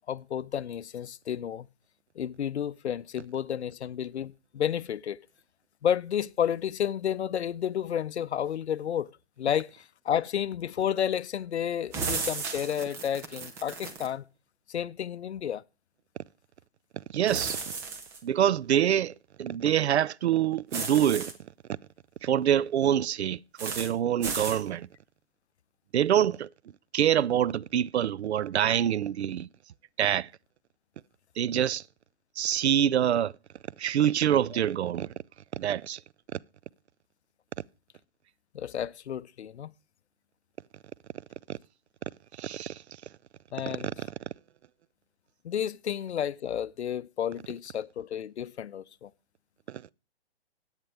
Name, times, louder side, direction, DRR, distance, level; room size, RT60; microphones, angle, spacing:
voice 1, 0.1-1.7 2.2-5.2 5.8-9.1 9.4-14.2 14.7-15.6 38.5-39.7 43.5-43.9 45.4-49.1, left 9 dB, 90° left, 0.6 m, -31 dB
sound 1, 11.9-14.1 17.3-18.2 20.7-21.3 23.6-23.9 24.2-24.6, right 4 dB, 10° right, 0.5 m, -34 dB
voice 2, 17.1-17.6 18.2-21.3 21.7-21.8 22.2-24.9 25.9-26.5 26.9-29.5 30.0-30.3 31.4-31.8 32.4-33.3 33.8-35.1 35.6-36.0 36.3-36.4 41.5-41.6 42.4-42.8 44.0-44.1 49.7-49.8, right 10 dB, 85° right, 0.5 m, -26 dB
14.0 x 9.0 x 3.3 m
hypercardioid pair, 150°, 32 cm